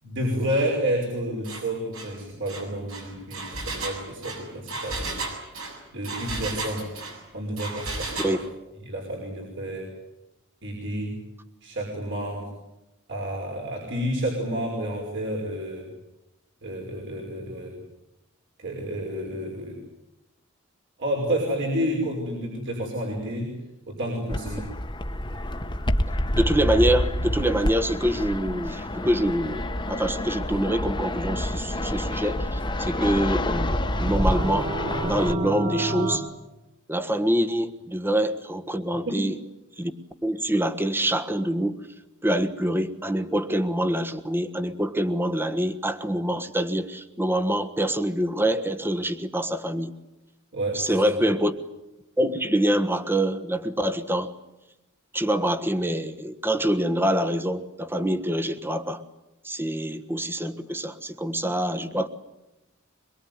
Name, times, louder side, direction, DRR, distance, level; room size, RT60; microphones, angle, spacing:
voice 1, 0.0-5.2 5.9-6.9 7.3-8.4 8.9-9.9 10.6-11.2 11.6-12.5 13.1-15.9 16.6-17.8 18.6-19.8 21.0-23.5 23.9-24.7 39.1-39.2 50.5-51.2, right 1 dB, 60° right, -1 dB, 5.6 m, -30 dB
Engine, 1.4-1.6 1.9-2.1 2.5-7.2 7.6-8.4, right 3 dB, 75° right, 7.2 m, -34 dB
Fixed-wing aircraft airplane, 24.3-35.3, left 1 dB, 20° left, 1.3 m, -28 dB
voice 2, 26.4-34.7 35.0-36.2 36.9-39.3 39.8-39.9 40.2-41.9 42.2-49.9 50.7-51.5 52.2-54.3 55.1-59.0 59.4-62.1, right 1 dB, 10° right, 9 dB, 1.4 m, -25 dB
sound 1, 33.6-36.2, right 2 dB, 45° right, 3.8 m, -30 dB
24.0 x 23.0 x 9.5 m, 0.95 s
head